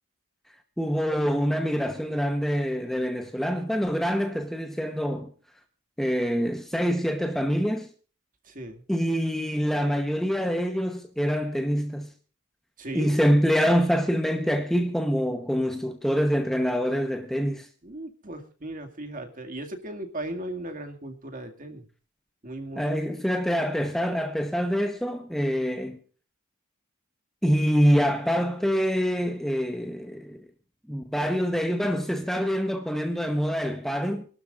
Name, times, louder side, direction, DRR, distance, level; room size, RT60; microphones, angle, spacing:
voice 1, 0.8-5.3 6.0-7.9 8.9-12.1 12.9-17.7 22.8-26.0 27.4-30.4 30.9-34.3, equal, ahead, 0.9 m, -25 dB
voice 2, 8.5-8.8 12.8-13.2 17.8-21.8 22.4-23.0, right 1 dB, 40° right, 2.1 m, -37 dB
27.5 x 12.0 x 2.5 m
head